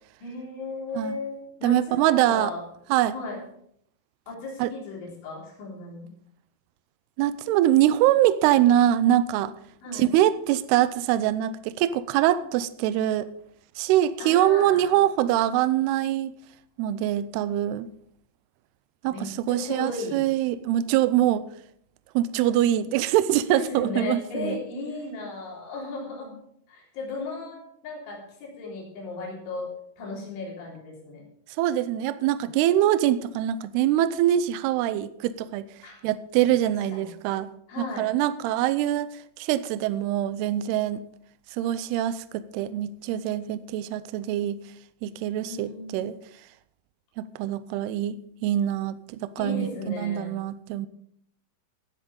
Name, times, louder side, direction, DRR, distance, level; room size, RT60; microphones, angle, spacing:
voice 1, 0.2-2.6 3.1-3.4 4.3-6.1 9.8-10.1 14.2-15.0 19.1-20.2 23.5-26.3 26.7-31.2 35.8-36.0 36.9-37.1 37.7-38.1 45.4-46.1 49.4-50.3, left 3 dB, 85° left, -3 dB, 6.2 m, -35 dB
voice 2, 1.6-2.5 2.9-3.1 4.6-4.7 7.2-9.5 9.9-13.3 13.8-16.3 16.8-17.9 19.0-21.5 22.2-24.6 31.6-35.6 36.0-37.5 37.8-41.0 41.6-44.6 45.0-46.1 47.2-48.2 48.4-50.9, right 12 dB, 85° right, 15 dB, 2.3 m, -24 dB
16.5 x 8.0 x 5.3 m, 0.69 s
omnidirectional pair, 5.3 m